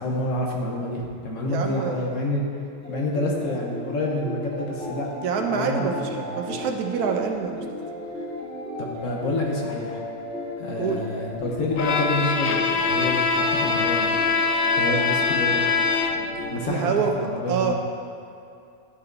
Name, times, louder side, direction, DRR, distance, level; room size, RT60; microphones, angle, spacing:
voice 1, 0.0-2.4 2.9-5.1 5.5-5.9 6.2-6.6 8.8-10.0 10.6-14.3 14.8-15.6 16.1-17.7, left 1 dB, 60° left, -1 dB, 1.2 m, -28 dB
voice 2, 1.4-2.1 5.2-6.1 6.3-7.6 10.8-11.0 16.6-17.1 17.5-17.7, right 6 dB, 80° right, 3 dB, 1.2 m, -26 dB
sound 1, 2.7-16.6, left 1 dB, 5° left, 1.4 m, -35 dB
Bowed string instrument, 11.8-16.4, left 5 dB, 90° left, 0.5 m, -23 dB
11.0 x 5.5 x 2.6 m, 2.5 s
omnidirectional pair, 1.6 m